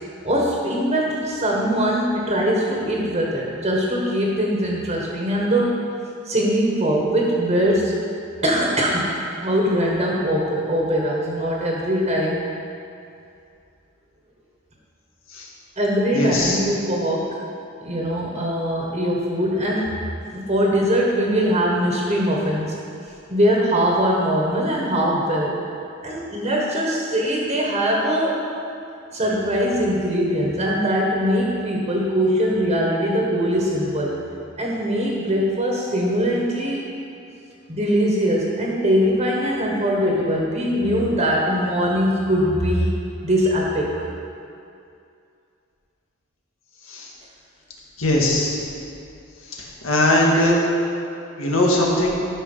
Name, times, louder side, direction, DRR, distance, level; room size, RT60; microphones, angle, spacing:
voice 1, 0.2-5.8 6.3-8.0 8.4-12.4 15.8-17.4 17.8-20.0 20.3-22.7 23.3-25.6 26.0-28.4 29.1-34.2 34.6-36.8 37.7-42.9 43.2-43.9, equal, 30° right, -2 dB, 1.5 m, -21 dB
voice 2, 16.1-16.6 46.9-47.0 48.0-48.5 49.8-50.6 51.4-52.2, left 1 dB, 80° left, -3 dB, 2.0 m, -19 dB
13.5 x 6.2 x 5.6 m, 2.5 s
head